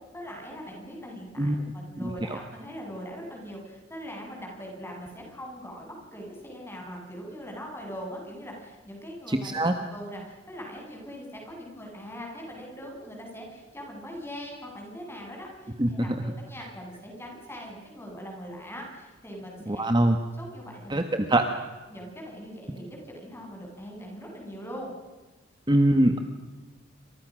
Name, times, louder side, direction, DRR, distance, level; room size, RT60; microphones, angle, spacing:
voice 1, 0.1-19.9 20.4-21.0 21.9-24.9, equal, 10° left, 0 dB, 8.0 m, -41 dB
voice 2, 9.3-9.7 15.8-16.2 19.7-20.2 20.9-21.4 25.7-26.3, right 1 dB, 25° right, 6 dB, 1.5 m, -23 dB
28.5 x 26.5 x 6.4 m, 1.3 s
head